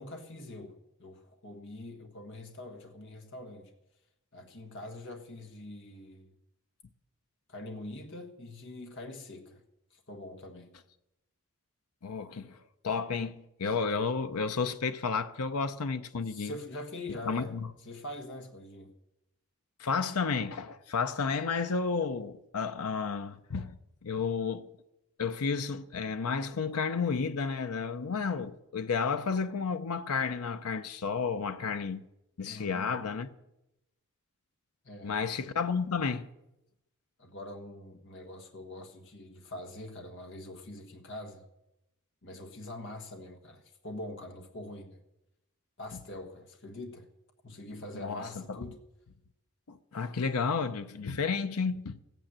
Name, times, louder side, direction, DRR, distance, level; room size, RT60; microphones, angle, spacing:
voice 1, 0.0-3.7 4.3-6.3 7.5-9.6 9.9-10.7 16.3-17.6 17.8-19.0 32.4-33.0 34.8-35.2 37.2-41.5 42.2-45.0 45.8-47.1 47.4-48.8, left 1 dB, 55° left, 1.5 m, -44 dB
voice 2, 12.0-16.5 17.3-17.7 19.8-24.7 25.2-32.0 32.4-33.3 35.0-36.3 47.9-48.6 49.7-52.0, left 5 dB, 90° left, 0.7 m, -32 dB
14.5 x 9.3 x 7.4 m
head